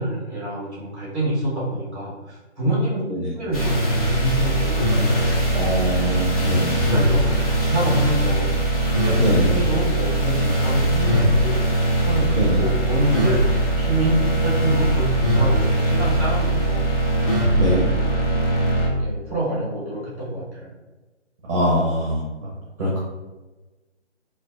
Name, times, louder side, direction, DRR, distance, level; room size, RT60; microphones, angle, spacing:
voice 1, 0.0-3.0 3.3-5.3 6.9-8.5 9.0-9.2 9.4-13.5 13.7-16.9 17.8-18.1 19.0-20.7, right 1 dB, 10° right, -6 dB, 1.1 m, -26 dB
sound 1, 3.5-18.9, right 1 dB, 30° left, 0.8 m, -21 dB
voice 2, 5.5-6.8 9.1-9.5 12.3-12.6 17.6-17.8 21.5-22.3 22.8-23.0, equal, 30° right, -6 dB, 0.7 m, -22 dB
4.1 x 2.3 x 2.3 m, 1.2 s
figure-of-eight pair, 155°, 36 cm